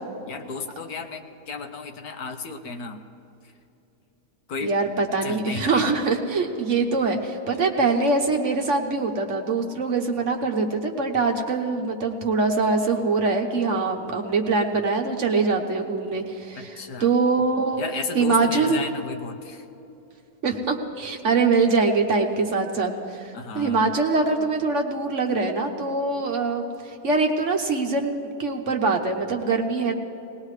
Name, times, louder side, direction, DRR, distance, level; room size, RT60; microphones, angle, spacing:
voice 1, 0.3-3.0 4.5-4.8 5.2-5.8 16.6-17.1 17.8-19.6 23.3-23.9, left 4 dB, 70° left, 6 dB, 1.4 m, -33 dB
voice 2, 4.6-17.8 18.1-18.8 20.4-26.6 27.0-29.9, right 4 dB, 55° right, 2 dB, 1.2 m, -23 dB
20.0 x 19.5 x 3.2 m, 2.9 s
omnidirectional pair, 1.7 m